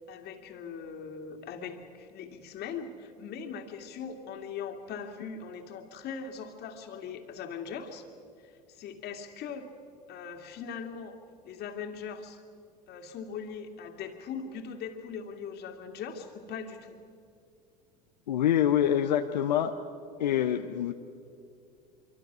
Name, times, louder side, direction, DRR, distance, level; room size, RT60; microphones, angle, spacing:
voice 1, 0.1-8.1 8.4-9.7 10.1-11.2 11.4-12.4 12.9-17.0, left 6 dB, 50° left, 5 dB, 2.5 m, -40 dB
voice 2, 18.3-19.7 20.2-20.9, left 10 dB, 85° left, 6 dB, 0.8 m, -25 dB
25.0 x 24.5 x 6.2 m, 2.4 s
hypercardioid pair, 80°, 21 cm